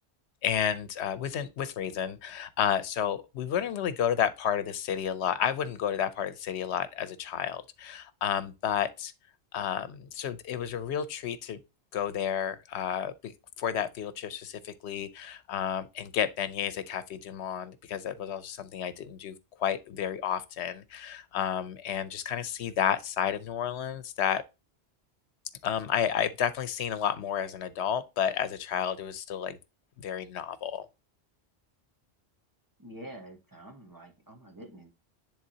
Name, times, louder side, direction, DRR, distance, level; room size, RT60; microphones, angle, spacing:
voice 1, 0.4-9.1 9.5-11.6 11.9-13.3 13.6-24.4 25.6-29.6 30.0-30.9, left 9 dB, 85° left, 0.9 m, -31 dB
voice 2, 32.8-34.9, right 1 dB, 20° right, 1.3 m, -47 dB
10.5 x 3.6 x 2.7 m
omnidirectional pair, 1.1 m